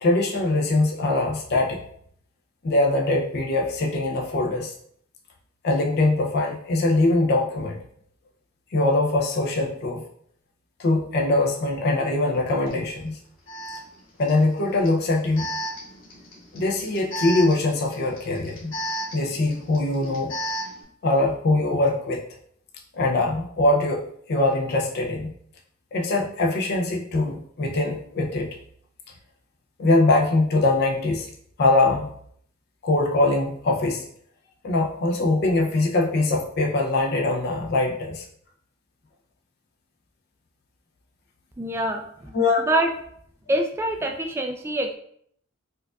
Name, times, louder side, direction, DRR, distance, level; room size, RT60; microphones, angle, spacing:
voice 1, 0.0-1.8 2.6-4.7 5.6-7.8 8.7-10.0 10.8-13.2 14.2-15.4 16.5-18.7 19.1-20.3 21.0-22.2 23.0-24.0 24.3-25.3 25.9-28.5 29.8-31.3 31.6-32.1 32.8-34.0 34.6-38.2 42.3-42.6, left 2 dB, 50° left, -1 dB, 0.5 m, -22 dB
Alarm, 12.7-12.8 13.5-20.8, equal, 90° left, 1.2 m, -35 dB
voice 2, 41.6-42.0 42.6-42.9 43.5-44.9, right 1 dB, 10° right, 3 dB, 0.3 m, -25 dB
4.4 x 2.4 x 2.3 m, 0.66 s
head